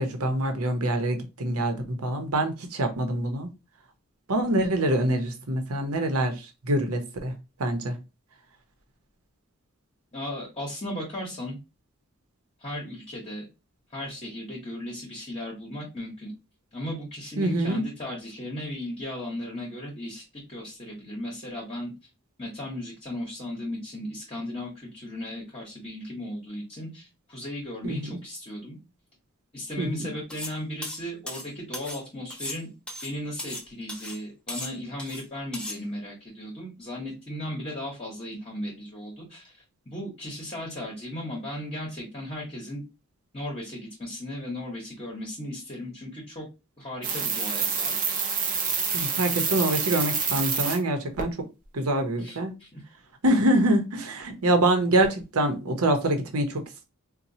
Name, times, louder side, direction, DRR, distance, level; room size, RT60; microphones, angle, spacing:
voice 1, 0.0-3.5 4.3-7.3 7.6-7.9 17.4-17.8 27.8-28.1 29.8-30.1 48.9-51.3 51.7-52.5 53.2-56.8, right 1 dB, 90° right, 0.8 m, -25 dB
voice 2, 10.1-11.6 12.6-13.4 13.9-16.3 16.7-21.9 22.4-28.8 29.5-32.7 33.0-42.8 43.3-46.5 46.8-47.9 52.2-52.8, left 1 dB, 25° left, 0.9 m, -36 dB
sound 1, 30.3-30.6 30.8-32.0 32.3-33.6 33.9-34.2 34.5-35.2 35.5-35.8, left 1 dB, 5° left, 0.5 m, -37 dB
sound 2, 47.0-50.8 51.2-51.3, right 6 dB, 35° right, 0.7 m, -27 dB
4.2 x 2.2 x 2.7 m
head